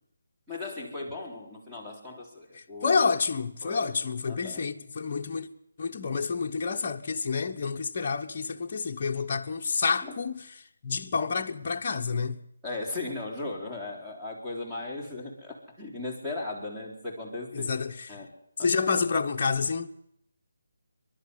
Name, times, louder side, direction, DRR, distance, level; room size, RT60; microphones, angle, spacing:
voice 1, 0.5-3.0 3.6-4.0 4.2-4.6 10.0-10.1 12.6-17.7 18.1-18.3 18.6-18.7, left 2 dB, 5° right, 4.2 m, -37 dB
voice 2, 2.8-5.5 5.8-10.4 10.8-12.4 17.5-18.1 18.6-19.9, left 5 dB, 40° left, 1.1 m, -28 dB
28.0 x 12.0 x 8.2 m
figure-of-eight pair, 150°, 0 cm